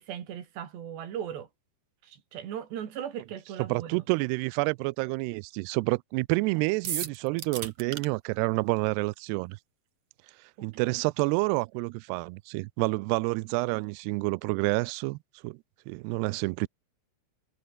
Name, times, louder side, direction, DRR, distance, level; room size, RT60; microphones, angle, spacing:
voice 1, 0.0-1.5 2.0-4.0 10.8-11.0, right 9 dB, 70° right, 4.8 m, -38 dB
voice 2, 3.7-9.6 10.6-15.2 15.4-15.6 15.9-16.7, right 25 dB, 90° right, 2.3 m, -28 dB
sound 1, 6.8-8.1, right 9 dB, 50° right, 1.9 m, -34 dB
omnidirectional pair, 5.3 m